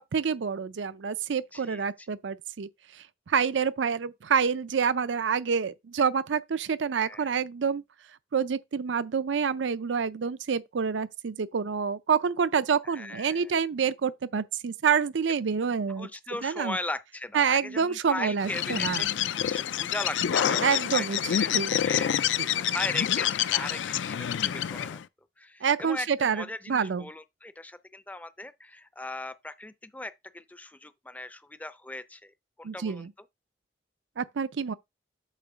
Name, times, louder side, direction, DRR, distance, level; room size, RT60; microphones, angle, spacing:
voice 1, 0.0-2.7 3.3-7.8 8.3-16.1 16.4-16.8 17.3-19.0 20.6-21.2 21.5-21.7 25.6-27.0 32.6-33.1 34.2-34.7, right 6 dB, 80° right, 0.5 m, -27 dB
voice 2, 1.5-2.1 6.9-7.3 12.8-13.5 15.9-25.0 25.4-33.1, left 2 dB, 10° left, 0.4 m, -39 dB
Bird, 18.4-25.0, left 10 dB, 80° left, 0.4 m, -27 dB
8.3 x 2.9 x 6.1 m
head